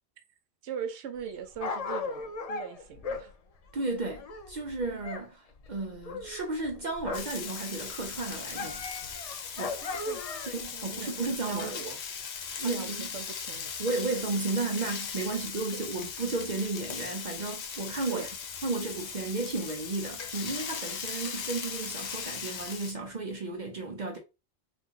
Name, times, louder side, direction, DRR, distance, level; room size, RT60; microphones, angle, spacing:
voice 1, 0.6-3.3 9.6-10.2 10.7-12.0 12.6-13.7 15.7-15.8 18.1-18.3 21.8-21.9, right 7 dB, 80° right, 0.9 m, -40 dB
Dog, 1.2-5.3 5.5-7.4 7.7-10.7 11.3-11.4, left 4 dB, 55° left, 0.4 m, -38 dB
voice 2, 3.7-8.8 9.6-9.8 10.4-11.8 12.6-13.1 13.8-18.3 18.6-24.2, right 3 dB, 50° right, 0.7 m, -33 dB
Frying (food), 7.1-22.9, left 7 dB, 90° left, 0.9 m, -38 dB
2.8 x 2.5 x 3.6 m
omnidirectional pair, 1.1 m